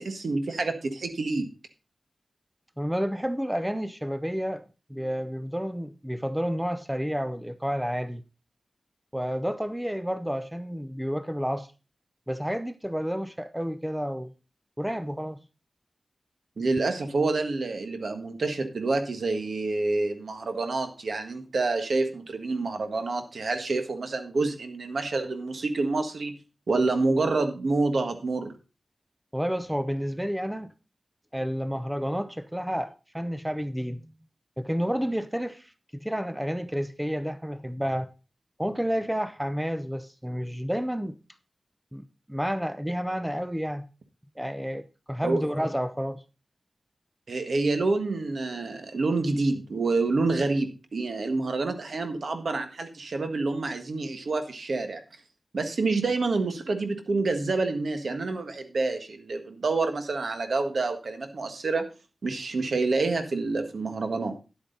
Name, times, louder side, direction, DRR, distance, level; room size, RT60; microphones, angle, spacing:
voice 1, 0.0-1.5 16.6-26.4 26.7-28.5 45.2-45.4 47.3-55.0 55.5-61.9 62.2-64.3, right 3 dB, 75° right, 1.6 m, -27 dB
voice 2, 2.8-4.6 4.9-8.2 9.1-11.7 12.3-14.3 14.8-15.4 29.3-30.7 31.3-34.0 34.6-38.1 38.6-41.2 41.9-43.9 44.4-46.2, equal, 5° right, 0.6 m, -30 dB
10.5 x 8.3 x 3.9 m
wide cardioid pair, 100°, 0 cm